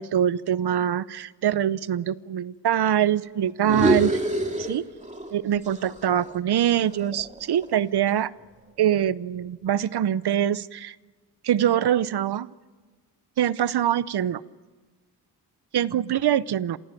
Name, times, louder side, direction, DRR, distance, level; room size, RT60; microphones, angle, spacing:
voice 1, 0.0-4.1 4.6-4.9 5.3-8.3 8.8-11.0 11.4-12.5 13.4-14.4 15.7-16.8, right 10 dB, 70° right, 18 dB, 0.7 m, -24 dB
sound 1, 3.6-5.4 5.6-7.9, right 1 dB, 15° right, 2.4 m, -27 dB
27.5 x 16.0 x 9.1 m, 1.4 s
wide cardioid pair, 90°, 40 cm